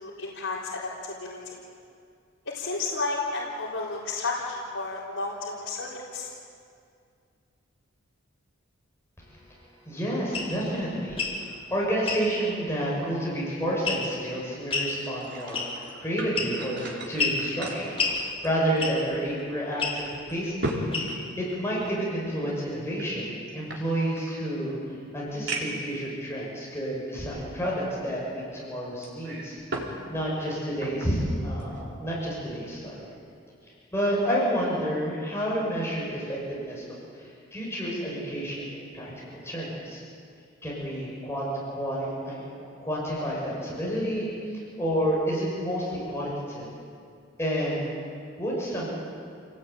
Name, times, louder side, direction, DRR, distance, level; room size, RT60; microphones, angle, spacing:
voice 1, 0.0-1.6 2.5-6.3, left 3 dB, 70° left, -7 dB, 4.1 m, -32 dB
voice 2, 9.2-9.6 9.8-20.8 21.4-24.8 25.1-29.6 30.1-33.1 33.9-40.0 40.6-46.7 47.4-47.9 48.4-48.9, equal, 15° left, -5 dB, 6.8 m, -30 dB
sound 1, 10.3-10.5 11.1-11.4 12.1-12.2 13.9-14.2 14.7-14.9 15.5-15.9 16.4-16.7 17.2-17.4 18.0-18.2 18.8-19.1 19.8-20.0 20.9-21.3, left 4 dB, 30° left, 4.8 m, -28 dB
sound 2, 15.0-19.1 19.4-19.5 20.1-22.1 22.9-24.4 24.9-25.0 25.5-25.9 26.7-26.8 29.0-30.0 30.3-31.2 31.6-31.8, right 1 dB, 55° right, 4.0 m, -36 dB
28.0 x 19.0 x 9.3 m, 2.3 s
head